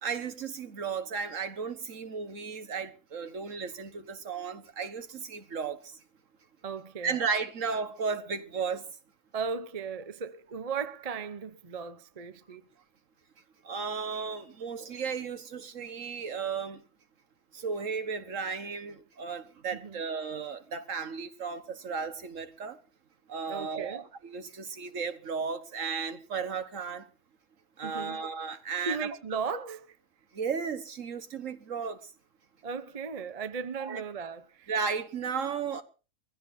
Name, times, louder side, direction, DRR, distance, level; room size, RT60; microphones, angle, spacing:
voice 1, 0.0-6.0 7.0-8.8 13.6-16.8 17.5-22.8 23.3-27.1 27.8-29.1 30.3-32.0 33.8-34.0 34.7-35.8, right 5 dB, 55° right, 1.6 m, -34 dB
voice 2, 6.6-7.3 9.3-12.6 19.7-20.0 23.5-24.0 27.8-28.2 28.9-30.0 32.6-34.7, right 5 dB, 35° right, 0.7 m, -36 dB
23.0 x 15.5 x 2.7 m
omnidirectional pair, 1.6 m